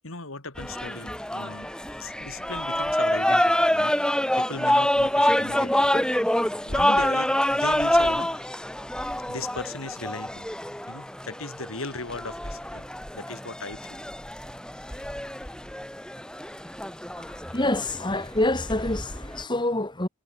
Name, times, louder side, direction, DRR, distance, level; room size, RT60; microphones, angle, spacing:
voice 1, 0.0-6.0 6.6-8.6 9.3-10.5 10.9-14.0 14.9-15.1, left 3 dB, 70° left, 3.5 m, -38 dB
sound 1, 0.6-19.4, left 1 dB, 5° left, 3.9 m, -26 dB
voice 2, 17.5-20.1, left 1 dB, 20° left, 2.9 m, -26 dB
head